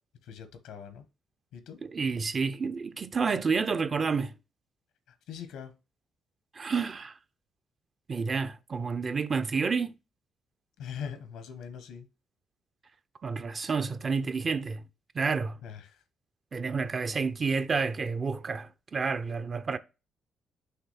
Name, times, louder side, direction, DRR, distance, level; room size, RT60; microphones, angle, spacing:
voice 1, 0.2-1.0 1.5-1.8 5.1-5.7 10.8-12.1 15.6-16.0, left 7 dB, 90° left, 1.1 m, -42 dB
voice 2, 1.8-4.3 6.5-7.1 8.1-9.9 13.2-14.8 15.1-15.6 16.5-19.8, right 5 dB, 40° right, 0.6 m, -29 dB
5.8 x 3.2 x 5.7 m
cardioid pair, 90°, 0 cm